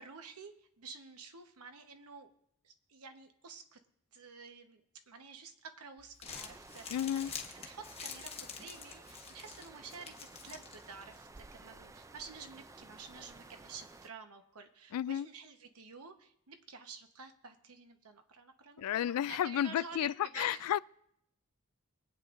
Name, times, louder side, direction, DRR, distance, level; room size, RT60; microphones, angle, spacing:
voice 1, 0.0-2.3 2.6-3.8 4.1-7.2 7.5-20.7, right 5 dB, 75° right, 1.1 m, -51 dB
Crumpling crinkling, 6.0-11.2, left 6 dB, 30° left, 1.1 m, -47 dB
sound 1, 6.2-14.1, right 3 dB, 15° right, 0.3 m, -54 dB
voice 2, 6.9-7.3 14.9-15.3 18.8-20.8, left 10 dB, 75° left, 0.3 m, -32 dB
22.5 x 8.7 x 2.5 m
head